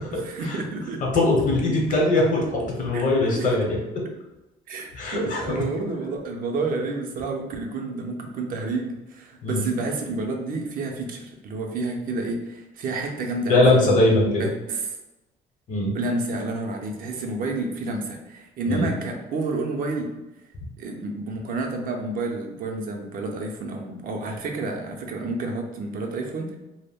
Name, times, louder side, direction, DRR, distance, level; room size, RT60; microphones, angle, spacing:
voice 1, 0.1-1.1 2.9-3.0 3.4-3.6 4.7-13.8 14.4-14.9 15.9-20.1 20.8-26.6, right 3 dB, 55° right, 3 dB, 0.5 m, -30 dB
voice 2, 1.1-3.8 4.9-5.4 9.4-9.6 13.5-14.5 15.7-15.9 18.7-18.9, left 2 dB, 50° left, -1 dB, 0.8 m, -20 dB
2.2 x 2.0 x 3.4 m, 0.99 s
cardioid pair, 110°, 17 cm